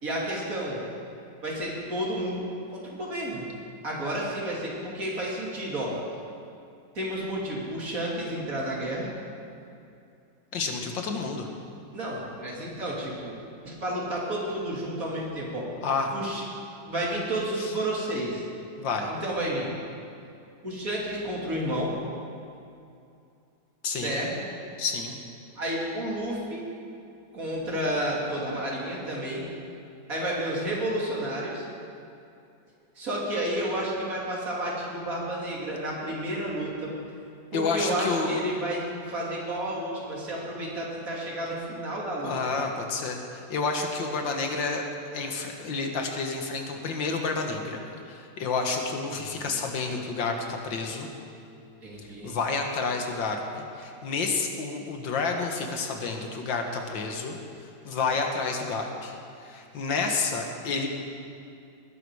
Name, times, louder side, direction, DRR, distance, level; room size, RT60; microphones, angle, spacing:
voice 1, 0.0-0.8 1.4-2.4 2.7-3.4 3.8-5.9 6.9-9.1 11.9-13.4 13.6-15.7 16.1-16.4 16.9-18.4 19.2-19.7 20.6-21.9 24.0-24.4 25.6-26.6 27.3-29.5 30.1-31.7 33.0-36.9 37.5-42.3 49.1-49.5 51.8-52.4, right 1 dB, 45° right, -4 dB, 3.2 m, -31 dB
voice 2, 10.5-11.5 15.8-16.1 17.6-17.7 18.8-19.1 23.8-24.1 24.8-25.2 37.5-38.4 42.2-44.8 45.1-47.8 48.1-51.1 52.2-57.4 57.8-60.9, left 4 dB, 90° left, 3 dB, 2.1 m, -30 dB
20.0 x 11.0 x 4.8 m, 2.6 s
omnidirectional pair, 2.0 m